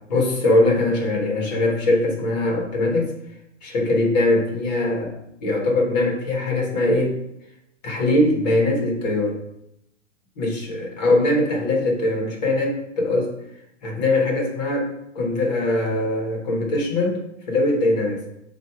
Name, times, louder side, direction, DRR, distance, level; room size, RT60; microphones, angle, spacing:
voice 1, 0.1-3.1 3.6-5.2 5.4-7.2 7.8-9.4 10.4-13.3 13.8-14.9 15.1-17.2 17.5-18.2, left 2 dB, 35° left, 1 dB, 1.3 m, -21 dB
7.8 x 2.6 x 4.6 m, 0.81 s
hypercardioid pair, 170°, 37 cm